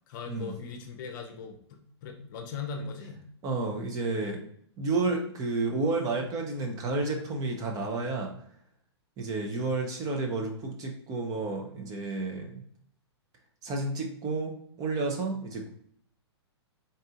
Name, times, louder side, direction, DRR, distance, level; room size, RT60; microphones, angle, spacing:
voice 1, 0.1-3.2, left 5 dB, 45° left, 3 dB, 0.8 m, -39 dB
voice 2, 3.4-4.4 4.8-8.3 9.2-12.6 13.6-15.7, right 3 dB, 25° right, 1 dB, 0.8 m, -31 dB
4.0 x 2.6 x 3.6 m, 0.65 s
figure-of-eight pair, 110°, 14 cm